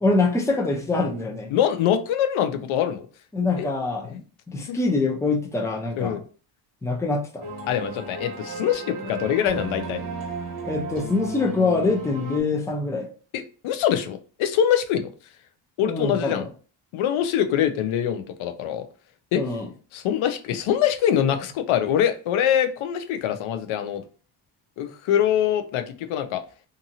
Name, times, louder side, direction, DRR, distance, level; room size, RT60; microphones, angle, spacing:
voice 1, 0.0-1.5 3.3-6.2 6.8-7.4 10.6-13.1 15.9-16.5 19.3-19.7, left 3 dB, 5° left, 0.5 m, -24 dB
voice 2, 1.5-3.1 3.6-3.7 4.7-4.8 6.0-6.2 7.7-10.0 13.3-15.1 15.8-16.5 16.9-18.8 19.3-19.4 19.9-24.0 24.8-26.4, left 9 dB, 75° left, 0.6 m, -24 dB
sound 1, 7.4-12.4, right 3 dB, 40° right, 1.1 m, -34 dB
2.7 x 2.6 x 2.6 m
cardioid pair, 95°, 49 cm